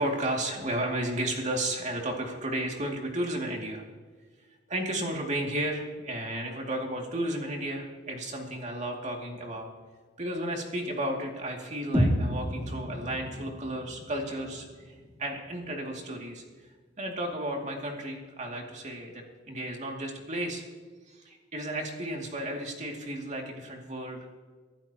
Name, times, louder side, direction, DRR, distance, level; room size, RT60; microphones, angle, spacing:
voice 1, 0.0-3.8 4.7-9.7 10.2-16.7 17.0-20.6 21.1-24.2, right 1 dB, 40° right, 1 dB, 2.5 m, -33 dB
sound 1, 11.9-15.9, equal, 10° right, 2.4 m, -31 dB
23.5 x 12.0 x 3.0 m, 1.4 s
head